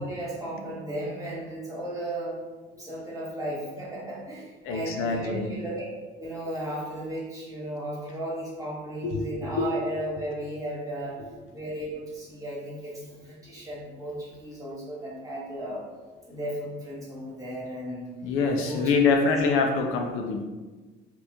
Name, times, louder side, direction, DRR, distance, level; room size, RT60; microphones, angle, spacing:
voice 1, 0.0-2.4 2.8-5.8 6.2-11.2 11.5-15.8 16.3-18.1 18.5-18.8 19.2-19.4, right 1 dB, 15° right, -6 dB, 1.2 m, -35 dB
voice 2, 4.6-5.5 9.0-9.3 9.6-9.7 18.2-20.4, left 4 dB, 85° left, 3 dB, 0.5 m, -25 dB
2.9 x 2.5 x 3.4 m, 1.3 s
cardioid pair, 120°, 21 cm